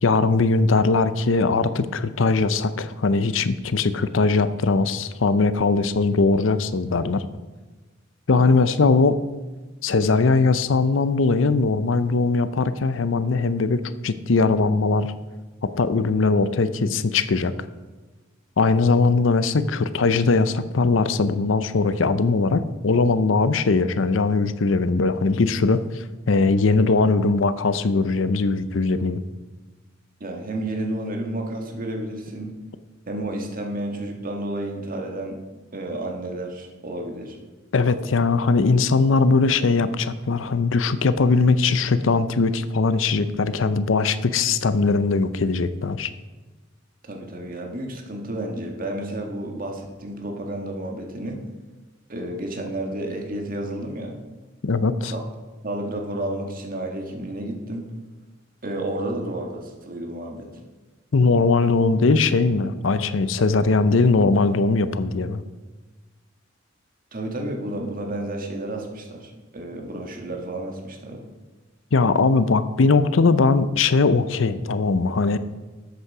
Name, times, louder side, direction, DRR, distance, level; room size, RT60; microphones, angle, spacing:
voice 1, 0.0-7.2 8.3-9.2 9.8-15.1 15.6-17.5 18.6-29.2 37.7-46.1 54.6-55.1 61.1-65.4 71.9-75.4, left 3 dB, 75° left, 13 dB, 0.6 m, -20 dB
voice 2, 30.2-32.5 33.1-35.4 35.7-37.4 47.0-51.4 52.1-54.2 55.1-55.2 55.6-57.9 58.6-60.6 63.5-63.7 67.1-71.3, right 1 dB, 45° right, 2 dB, 1.8 m, -31 dB
12.5 x 8.2 x 4.9 m, 1.2 s
head